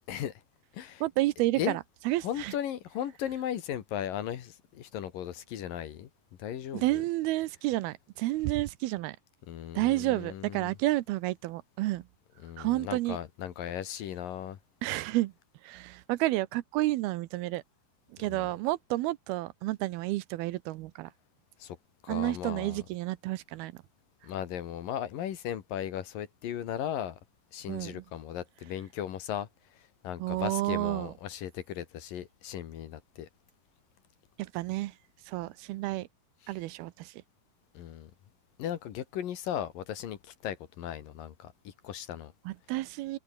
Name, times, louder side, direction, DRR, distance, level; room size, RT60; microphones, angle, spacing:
voice 1, 1.0-2.5 6.7-9.2 9.8-12.0 12.6-13.2 14.8-15.3 15.6-17.6 18.2-21.1 22.1-23.7 27.7-28.0 30.2-31.1 34.4-34.9 35.3-36.1 36.5-37.1 42.5-43.2, right 17 dB, 80° right, 2.7 m, -30 dB
voice 2, 2.2-6.1 6.4-7.0 9.5-10.7 12.4-14.6 18.2-18.5 21.6-21.8 22.0-22.8 24.2-27.2 27.5-29.5 30.0-33.3 36.4-36.5 37.7-38.1 38.6-40.2 40.4-42.3, left 10 dB, 65° left, 3.2 m, -37 dB
omnidirectional pair, 4.5 m